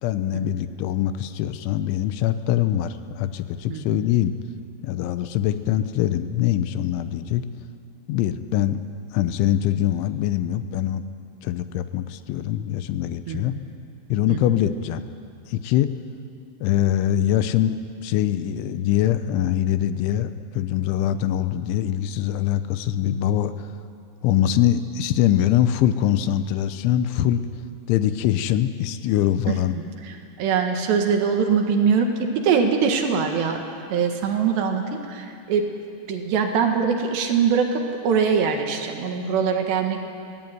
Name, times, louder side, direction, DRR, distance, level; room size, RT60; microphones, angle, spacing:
voice 1, 0.0-4.3 4.8-7.5 8.1-8.8 9.1-11.0 11.4-13.6 14.1-15.0 15.5-15.9 16.6-23.7 24.2-27.5 27.9-29.7, left 11 dB, 90° left, 11 dB, 3.2 m, -23 dB
voice 2, 3.7-4.1 13.3-13.7 14.3-14.6 29.5-29.6 30.0-33.6 33.9-35.7 36.1-40.0, right 6 dB, 70° right, 4 dB, 3.7 m, -23 dB
23.0 x 17.0 x 9.4 m, 2.4 s
omnidirectional pair, 5.4 m